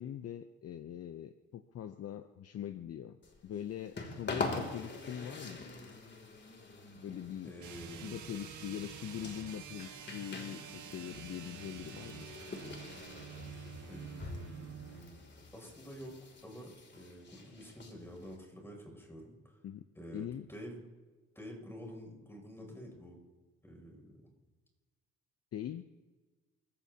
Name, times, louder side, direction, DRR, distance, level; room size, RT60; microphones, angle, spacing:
voice 1, 0.0-3.2 3.4-5.7 7.0-7.5 8.0-12.3 19.6-19.8 20.1-20.5 25.5-25.9, left 10 dB, 55° left, 10 dB, 0.7 m, -42 dB
sound 1, 3.2-18.4, left 3 dB, 35° left, 2.9 m, -45 dB
voice 2, 7.4-8.2 13.9-15.2 15.5-19.6 19.9-20.8 21.3-23.2 23.6-24.2, equal, 10° left, 1 dB, 6.7 m, -49 dB
sound 2, 7.6-15.1, right 8 dB, 75° right, 1.9 m, -48 dB
29.0 x 15.5 x 2.9 m, 1.3 s
cardioid pair, 90°, 30 cm